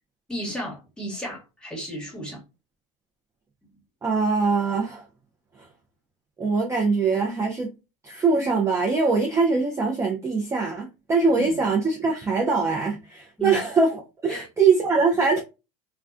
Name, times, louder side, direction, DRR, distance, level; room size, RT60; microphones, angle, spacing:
voice 1, 0.3-2.4 11.3-11.6 13.4-13.6 14.3-14.5, right 1 dB, 5° left, 1.2 m, -33 dB
voice 2, 4.0-5.0 5.6-5.7 6.4-7.7 8.0-15.4, right 4 dB, 15° right, 0.5 m, -22 dB
2.3 x 2.2 x 2.4 m
supercardioid pair, 105°, 16 cm